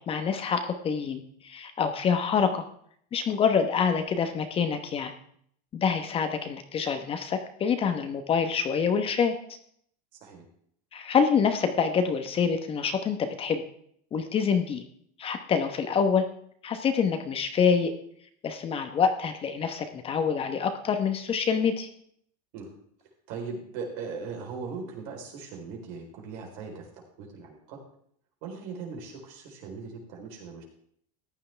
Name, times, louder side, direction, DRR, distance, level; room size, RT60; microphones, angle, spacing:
voice 1, 0.0-2.6 3.1-5.1 5.7-9.3 10.9-13.6 14.1-14.8 15.2-16.3 16.6-17.9 18.4-21.9, left 6 dB, 30° left, 8 dB, 1.1 m, -26 dB
voice 2, 23.3-26.9 27.2-27.8 28.4-30.6, right 5 dB, 70° right, 1 dB, 4.0 m, -39 dB
14.5 x 10.5 x 3.4 m, 0.65 s
supercardioid pair, 140°, 20 cm